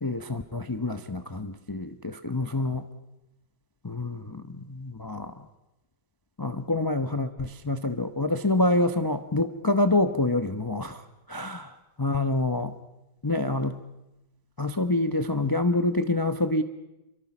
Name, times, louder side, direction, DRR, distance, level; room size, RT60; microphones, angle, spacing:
voice 1, 0.0-2.9 3.8-5.3 6.4-11.0 11.3-11.7 12.0-12.7 13.2-13.8 14.6-16.6, left 2 dB, 30° left, 9 dB, 0.4 m, -27 dB
29.5 x 23.5 x 6.1 m, 0.96 s
omnidirectional pair, 2.1 m